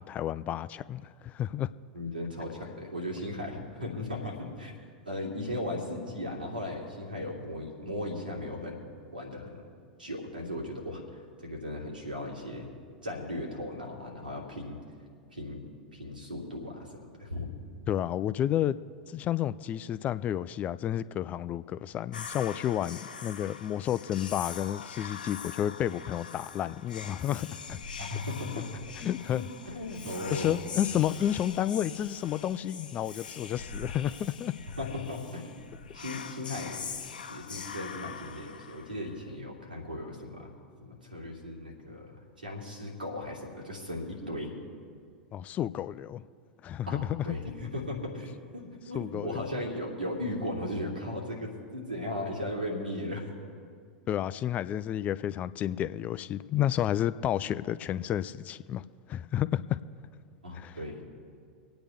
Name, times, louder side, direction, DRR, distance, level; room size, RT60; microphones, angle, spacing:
voice 1, 0.0-1.7 17.9-18.8 19.1-27.8 29.0-29.5 30.3-34.5 45.3-46.2 46.6-47.3 48.9-49.5 54.1-59.8 60.5-60.8, left 11 dB, 30° left, 15 dB, 0.4 m, -31 dB
voice 2, 1.9-4.7 5.0-8.8 9.1-9.5 10.0-12.7 13.0-14.8 15.3-15.6 15.9-17.5 28.0-28.8 29.3-30.6 34.8-35.5 35.9-36.8 37.3-40.5 40.8-42.1 42.4-44.5 46.9-53.2 60.4-61.1, left 1 dB, 85° right, -1 dB, 2.9 m, -37 dB
Whispering, 22.1-39.3, left 6 dB, 75° left, 0.8 m, -43 dB
25.5 x 8.9 x 3.5 m, 2.1 s
figure-of-eight pair, 90°, 5 cm